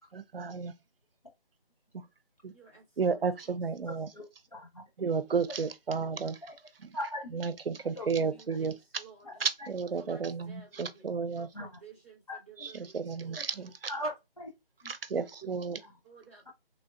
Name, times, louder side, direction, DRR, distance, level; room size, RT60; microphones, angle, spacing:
voice 1, 0.1-0.7 2.4-2.5 3.0-4.1 5.0-6.4 7.3-8.7 9.4-11.5 12.9-13.7 14.9-15.8, right 5 dB, 70° right, 0.6 m, -32 dB
voice 2, 2.5-3.6 7.8-9.5 10.0-11.1 11.3-13.7 16.0-16.5, right 6 dB, 15° left, 0.9 m, -55 dB
voice 3, 3.9-5.1 6.4-6.6 6.9-7.4 8.0-8.1 8.5-8.6 9.2-9.7 11.5-11.8 12.3-12.7 13.4-13.5 13.9-14.5 14.8-14.9 15.8-15.9, equal, 40° left, 0.7 m, -40 dB
3.4 x 2.5 x 2.3 m
figure-of-eight pair, 175°, 29 cm